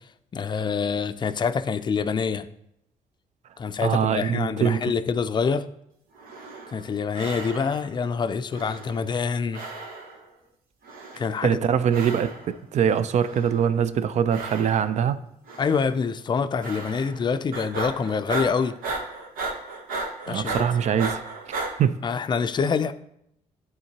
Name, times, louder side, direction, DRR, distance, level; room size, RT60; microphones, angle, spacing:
voice 1, 0.3-2.5 3.6-5.7 6.7-9.6 11.2-11.5 15.6-18.7 20.3-20.7 22.0-22.9, left 5 dB, 35° left, 0.4 m, -26 dB
voice 2, 3.8-4.9 11.4-12.3 12.7-15.2 20.3-21.2 21.8-22.0, right 8 dB, 55° right, 0.4 m, -23 dB
sound 1, 6.1-6.9 7.1-8.0 8.5-9.3 9.5-10.3 10.8-11.5 11.9-12.6 13.1-13.8 14.3-15.1 15.5-15.9 16.6-17.2 17.5-21.7, right 3 dB, 85° right, 1.0 m, -35 dB
11.0 x 3.6 x 2.8 m
cardioid pair, 90°, 14 cm